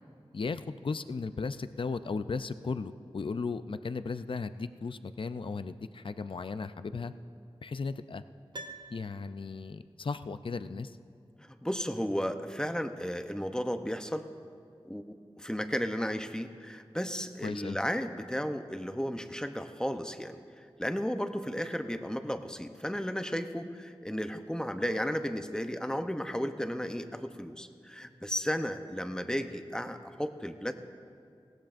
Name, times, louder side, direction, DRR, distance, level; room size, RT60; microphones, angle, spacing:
voice 1, 0.3-7.1 7.6-8.2 8.9-11.0 17.4-17.8, left 4 dB, 60° left, 12 dB, 0.4 m, -36 dB
Piano, 8.5-9.8 10.1-10.2, right 2 dB, 50° right, 0.7 m, -47 dB
voice 2, 11.4-14.2 14.9-15.0 15.4-30.7, equal, 5° left, 8 dB, 0.7 m, -34 dB
19.5 x 16.0 x 2.6 m, 2.4 s
wide cardioid pair, 45°, 10 cm